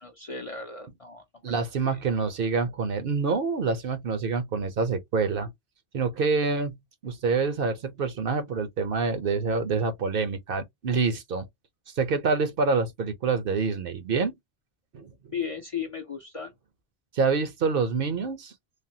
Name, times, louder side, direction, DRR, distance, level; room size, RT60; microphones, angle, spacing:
voice 1, 0.0-2.0 15.3-16.5, left 6 dB, 40° left, 0.5 m, -36 dB
voice 2, 1.4-5.5 5.9-6.8 7.0-11.4 12.0-14.3 14.9-15.1 17.1-18.5, right 4 dB, 60° right, 0.8 m, -26 dB
3.3 x 2.1 x 2.6 m
omnidirectional pair, 1.1 m